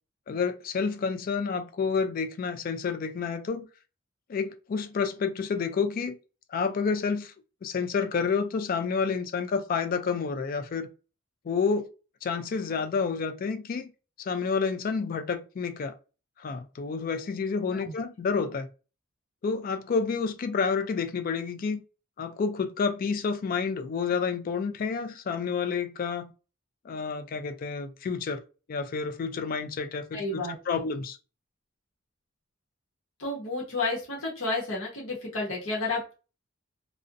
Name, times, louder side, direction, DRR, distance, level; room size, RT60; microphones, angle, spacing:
voice 1, 0.3-3.7 4.3-6.2 6.5-7.3 7.6-10.9 11.4-11.9 12.2-13.9 14.2-16.0 16.4-18.7 19.4-21.8 22.2-26.3 26.8-28.4 28.7-31.2, left 5 dB, 45° left, 0.3 m, -29 dB
voice 2, 30.1-30.5 33.2-36.1, left 2 dB, 70° left, 0.8 m, -31 dB
2.5 x 2.1 x 2.4 m
head